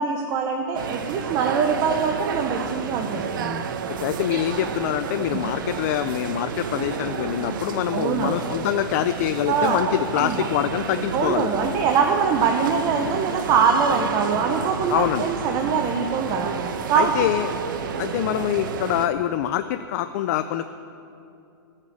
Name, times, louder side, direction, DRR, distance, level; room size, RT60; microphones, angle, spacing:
voice 1, 0.0-3.6 5.1-5.4 7.9-8.4 9.5-9.8 10.1-10.5 11.1-16.5 16.9-17.3, right 6 dB, 30° right, 3 dB, 0.9 m, -23 dB
sound 1, 0.7-19.1, right 6 dB, 65° right, 0.9 m, -31 dB
voice 2, 3.9-11.7 14.9-15.3 16.9-17.5 18.0-20.7, left 12 dB, 45° left, 10 dB, 0.4 m, -25 dB
16.0 x 6.6 x 7.2 m, 2.7 s
hypercardioid pair, 150°, 12 cm